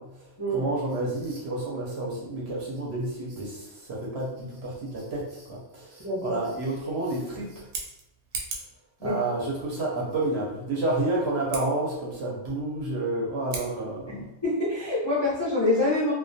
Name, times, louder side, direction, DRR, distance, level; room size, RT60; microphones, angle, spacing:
voice 1, 0.5-7.7 9.0-14.2, right 2 dB, 65° right, -4 dB, 0.8 m, -30 dB
voice 2, 6.0-6.3 9.0-9.2 14.1-16.1, left 1 dB, 30° left, -9 dB, 0.4 m, -26 dB
Scissors, 7.5-8.8 11.4-11.7 13.4-13.7, right 4 dB, 85° right, 1.0 m, -36 dB
2.2 x 2.2 x 2.6 m, 0.93 s
omnidirectional pair, 1.4 m